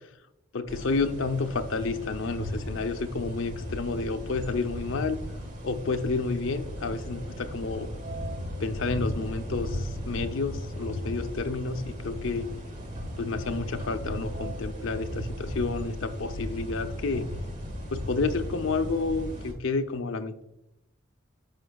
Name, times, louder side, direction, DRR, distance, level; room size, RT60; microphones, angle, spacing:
voice 1, 0.5-5.2 5.6-7.9 8.6-12.5 13.2-17.3 17.9-20.4, left 3 dB, 70° left, 8 dB, 0.6 m, -30 dB
sound 1, 0.7-19.5, equal, 35° right, 1.4 m, -36 dB
10.5 x 6.0 x 2.3 m, 0.87 s
head